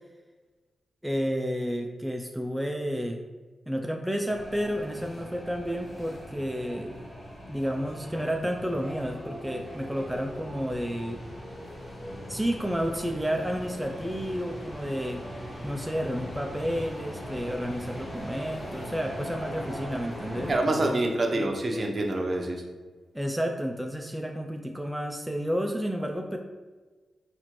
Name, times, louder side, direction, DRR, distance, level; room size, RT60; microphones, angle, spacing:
voice 1, 1.0-3.2 3.7-6.9 7.5-11.2 12.3-15.2 15.6-21.0 23.1-26.4, equal, 5° right, 3 dB, 0.3 m, -31 dB
sound 1, 4.3-20.6, equal, 40° left, 1.2 m, -40 dB
voice 2, 20.5-22.6, right 2 dB, 45° right, 3 dB, 0.6 m, -26 dB
4.2 x 2.5 x 2.9 m, 1.3 s
cardioid pair, 60°, 0 cm